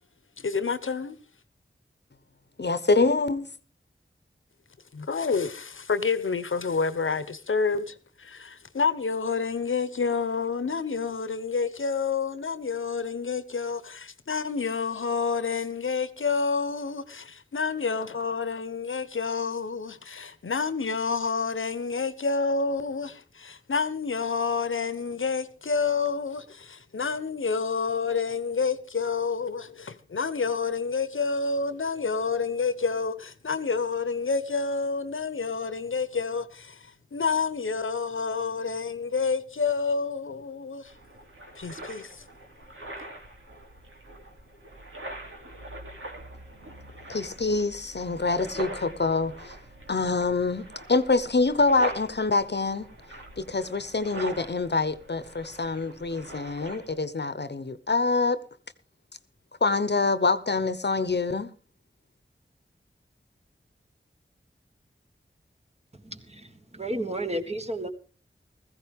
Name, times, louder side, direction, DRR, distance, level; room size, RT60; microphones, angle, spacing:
voice 1, 0.4-1.2 4.9-40.9 41.5-42.2, left 5 dB, 80° left, 1.1 m, -29 dB
voice 2, 2.6-3.5 47.1-49.5 49.9-52.9 53.4-58.4 59.6-61.5, left 3 dB, 60° left, 1.0 m, -25 dB
sound 1, 40.8-57.0, right 1 dB, 85° right, 3.1 m, -42 dB
voice 3, 66.1-66.4 66.7-67.9, right 1 dB, 30° right, 1.9 m, -31 dB
16.0 x 15.0 x 3.6 m
cardioid pair, 40°, 20 cm